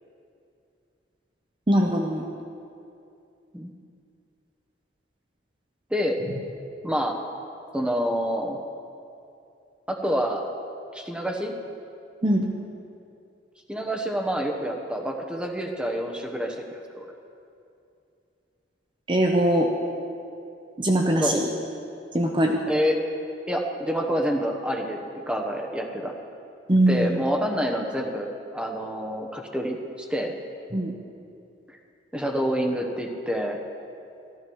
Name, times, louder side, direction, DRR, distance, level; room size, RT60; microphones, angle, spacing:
voice 1, 1.7-2.3 12.2-12.5 19.1-19.7 20.8-21.5 22.1-22.6 26.7-27.2 30.7-30.9, right 1 dB, 25° right, 2 dB, 0.8 m, -21 dB
voice 2, 6.8-7.2 7.7-8.6 9.9-10.5 10.9-11.5 13.7-17.1 21.2-21.4 22.7-23.0 23.5-26.1 26.9-30.3 31.7-31.8 32.1-33.6, equal, 5° right, 2 dB, 1.0 m, -27 dB
14.0 x 13.5 x 4.7 m, 2.6 s
head